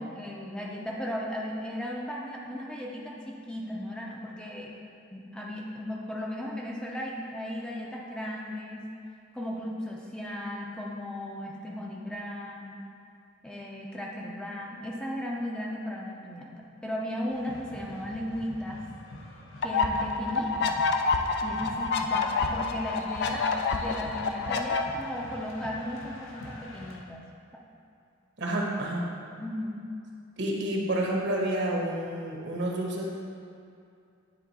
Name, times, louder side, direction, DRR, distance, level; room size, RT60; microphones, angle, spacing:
voice 1, 0.0-4.7 5.1-8.8 9.3-12.8 13.4-16.5 16.8-18.8 19.6-20.8 21.4-27.2 29.4-29.9, left 1 dB, 5° left, -3 dB, 0.5 m, -36 dB
sound 1, 17.3-27.0, left 1 dB, 75° left, 0.8 m, -46 dB
sound 2, 19.6-24.8, left 4 dB, 55° left, 0.4 m, -28 dB
voice 2, 28.4-29.0 30.4-33.1, right 1 dB, 60° right, -2 dB, 1.1 m, -29 dB
9.5 x 3.7 x 4.1 m, 2.5 s
head